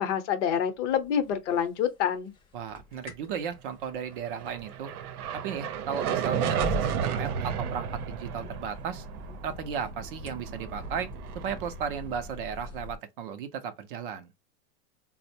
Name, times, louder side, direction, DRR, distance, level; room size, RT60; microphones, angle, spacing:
voice 1, 0.0-2.3, left 8 dB, 50° left, 0.8 m, -27 dB
sound 1, 1.2-1.8 2.2-13.0, left 3 dB, 20° left, 0.6 m, -43 dB
voice 2, 2.5-4.9 5.3-9.1 9.4-11.1 11.4-14.3, right 7 dB, 40° right, 0.4 m, -35 dB
sound 2, 4.1-12.5, right 8 dB, 80° right, 0.7 m, -33 dB
4.2 x 2.0 x 2.7 m
supercardioid pair, 150°, 44 cm